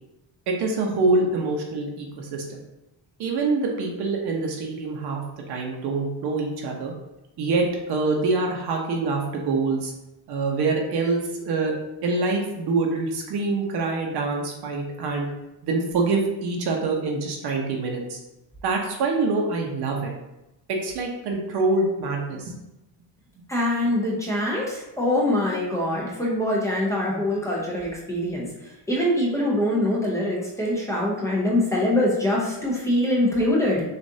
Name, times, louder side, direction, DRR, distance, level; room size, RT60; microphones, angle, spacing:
voice 1, 0.5-2.6 3.2-5.2 5.5-6.9 7.4-9.9 10.3-11.7 12.0-15.3 15.6-18.2 18.6-20.1 20.7-22.5, right 3 dB, 65° right, 1 dB, 0.8 m, -25 dB
voice 2, 23.5-33.8, left 1 dB, 5° left, -4 dB, 0.6 m, -24 dB
6.2 x 2.5 x 2.7 m, 0.94 s
cardioid pair, 180°, 43 cm